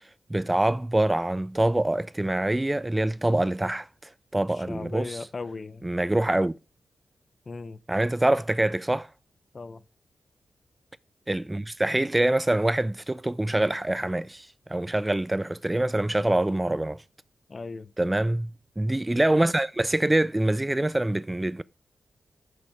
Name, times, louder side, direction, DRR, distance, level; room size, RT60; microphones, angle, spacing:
voice 1, 0.3-3.9 4.3-5.2 5.8-6.5 7.9-9.1 11.3-17.0 18.0-21.6, right 1 dB, 20° right, 0.4 m, -25 dB
voice 2, 4.5-5.9 7.5-7.8 9.5-9.8 17.5-17.9, left 4 dB, 45° left, 0.8 m, -37 dB
8.7 x 6.6 x 5.0 m
supercardioid pair, 45°, 0 cm